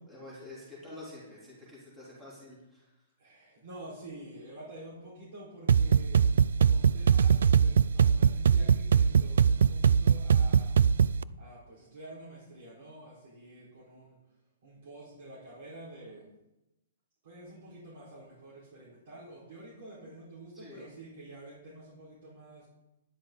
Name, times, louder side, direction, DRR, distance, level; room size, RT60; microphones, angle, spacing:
voice 1, 0.1-2.9 20.5-20.9, left 2 dB, 5° right, -9 dB, 3.3 m, -48 dB
voice 2, 3.2-10.7 11.4-14.2 14.6-16.2 17.2-22.7, right 1 dB, 45° right, -8 dB, 4.3 m, -48 dB
sound 1, 5.7-11.2, right 7 dB, 75° right, 0.3 m, -22 dB
12.0 x 10.5 x 3.9 m, 0.97 s
hypercardioid pair, 175°, 0 cm